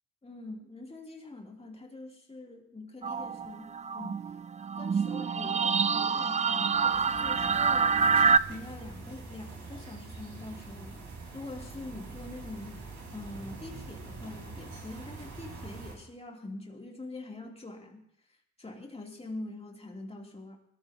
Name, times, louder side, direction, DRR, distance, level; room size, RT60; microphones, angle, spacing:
voice 1, 0.2-4.2 4.7-12.8 13.1-18.0 18.3-20.6, left 2 dB, 20° left, 0 dB, 3.0 m, -44 dB
sound 1, 3.0-8.4, right 5 dB, 25° right, 0.4 m, -26 dB
sound 2, 6.4-15.9, right 3 dB, 75° right, 4.5 m, -45 dB
20.0 x 14.5 x 2.9 m, 0.73 s
cardioid pair, 85°, 30 cm